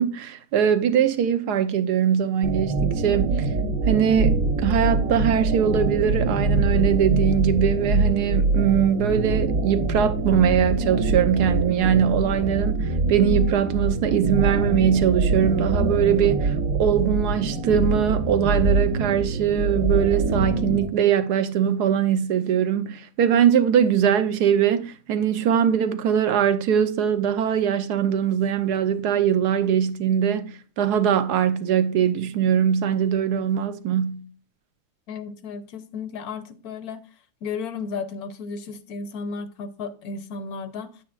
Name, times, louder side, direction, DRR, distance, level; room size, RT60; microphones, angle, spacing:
voice 1, 0.0-3.5 3.9-34.2, right 8 dB, 85° right, 1.3 m, -22 dB
sound 1, 2.4-20.9, right 3 dB, 60° right, 1.3 m, -24 dB
voice 2, 35.1-37.0 37.4-41.0, left 5 dB, 70° left, 1.2 m, -34 dB
8.9 x 8.5 x 2.4 m
omnidirectional pair, 1.7 m